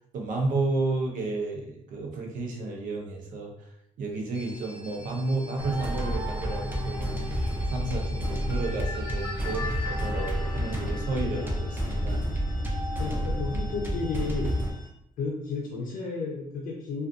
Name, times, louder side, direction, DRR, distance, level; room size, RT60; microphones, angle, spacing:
voice 1, 0.1-3.5 4.0-12.2, right 2 dB, 70° right, 0 dB, 0.7 m, -32 dB
sound 1, 4.3-14.9, left 4 dB, 30° left, 0.7 m, -44 dB
sound 2, 5.6-14.7, equal, 15° right, 0.5 m, -30 dB
voice 2, 13.0-14.6 15.2-17.1, left 4 dB, 75° left, -2 dB, 0.5 m, -32 dB
2.4 x 2.4 x 2.5 m, 0.75 s
cardioid pair, 135°, 14 cm